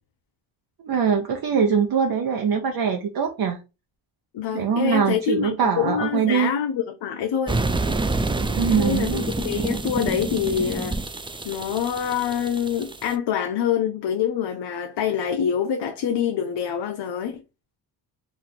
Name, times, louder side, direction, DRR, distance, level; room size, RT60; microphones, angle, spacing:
voice 1, 0.8-3.6 4.5-6.5 8.6-9.2, right 7 dB, 50° right, 0.9 m, -22 dB
voice 2, 4.3-7.6 8.7-11.0 11.4-17.4, left 8 dB, 60° left, 0.7 m, -26 dB
sound 1, 7.5-13.1, right 3 dB, 10° right, 0.4 m, -27 dB
2.9 x 2.6 x 4.1 m
supercardioid pair, 65°, 47 cm